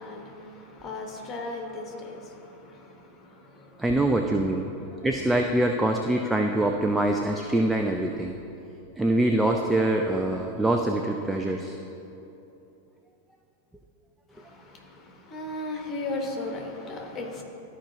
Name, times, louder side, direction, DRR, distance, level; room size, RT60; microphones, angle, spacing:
voice 1, 0.0-3.7 14.3-17.4, left 2 dB, 25° left, 1 dB, 1.2 m, -36 dB
voice 2, 3.8-4.7 5.0-8.4 9.0-11.8, right 1 dB, 5° right, 2 dB, 0.4 m, -24 dB
13.0 x 4.8 x 2.8 m, 2.9 s
figure-of-eight pair, 90°, 0 cm